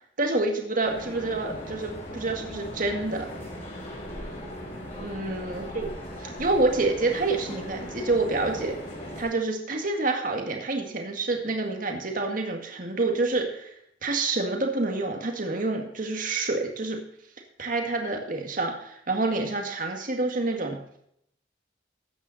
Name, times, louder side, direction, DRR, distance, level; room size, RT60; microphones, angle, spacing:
voice 1, 0.2-3.3 5.0-5.9 6.2-8.8 9.2-13.7 14.0-17.0 17.6-20.8, right 3 dB, 50° right, 2 dB, 2.0 m, -27 dB
sound 1, 0.8-9.2, left 1 dB, 35° left, 5.7 m, -38 dB
14.0 x 9.2 x 4.2 m, 0.71 s
head